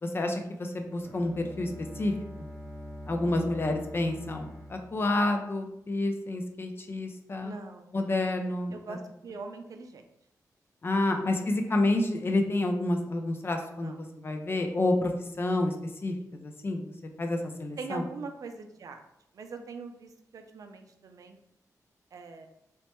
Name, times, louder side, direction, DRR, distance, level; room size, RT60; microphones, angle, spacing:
voice 1, 0.0-2.1 2.4-2.5 3.1-7.5 7.9-8.7 10.8-15.1 15.4-15.7 16.0-16.8 17.2-18.0, left 2 dB, 35° left, 4 dB, 0.4 m, -29 dB
Bowed string instrument, 1.0-6.0, left 1 dB, 10° left, 1.0 m, -44 dB
voice 2, 7.4-8.3 8.7-10.0 11.4-11.5 13.8-14.0 17.8-19.0 19.3-21.4 22.1-22.5, right 4 dB, 65° right, 6 dB, 0.4 m, -42 dB
3.1 x 2.1 x 2.9 m, 0.80 s
wide cardioid pair, 90°, 6 cm